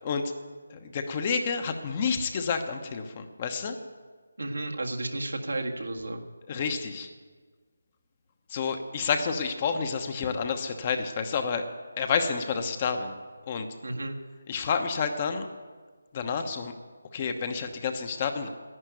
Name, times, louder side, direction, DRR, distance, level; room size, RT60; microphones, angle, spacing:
voice 1, 0.0-0.3 0.7-3.8 6.5-7.1 8.5-11.6 12.0-13.2 13.5-13.7 14.5-15.5 16.1-16.7 17.1-18.5, left 5 dB, 30° left, 7 dB, 1.0 m, -29 dB
voice 2, 4.4-6.2 13.8-14.2, right 2 dB, 80° right, 2 dB, 1.8 m, -32 dB
11.0 x 9.3 x 9.2 m, 1.4 s
figure-of-eight pair, 160°, 0 cm